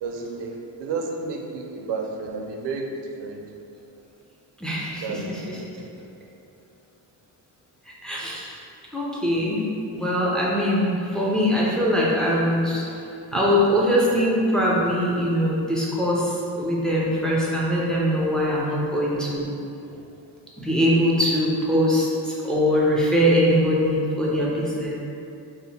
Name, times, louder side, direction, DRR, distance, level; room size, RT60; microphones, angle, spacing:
voice 1, 0.0-3.4 5.0-5.9 13.3-13.4 19.9-20.1, right 4 dB, 75° right, 2 dB, 0.5 m, -32 dB
voice 2, 4.6-5.6 8.0-8.5 8.9-9.6 9.9-12.9 13.3-19.5 20.6-25.0, equal, ahead, -6 dB, 0.3 m, -22 dB
2.8 x 2.0 x 4.0 m, 2.6 s
cardioid pair, 140°, 42 cm